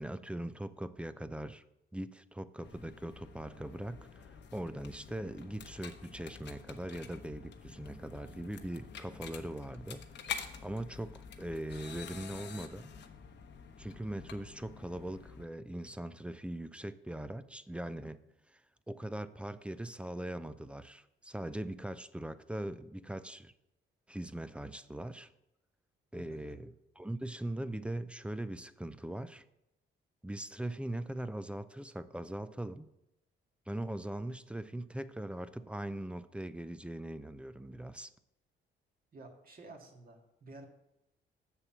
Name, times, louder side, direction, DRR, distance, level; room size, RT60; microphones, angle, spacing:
voice 1, 0.0-1.6 1.9-12.9 13.8-18.2 18.5-18.6 18.9-23.5 24.1-25.3 26.1-29.4 30.2-32.9 33.7-38.1, right 1 dB, 5° right, 13 dB, 0.5 m, -41 dB
sound 1, 2.6-15.4, left 7 dB, 65° left, 1.0 m, -48 dB
voice 2, 26.2-26.6 39.1-40.7, right 2 dB, 45° right, 2 dB, 2.0 m, -52 dB
7.3 x 6.9 x 6.0 m, 0.86 s
cardioid pair, 90°, 20 cm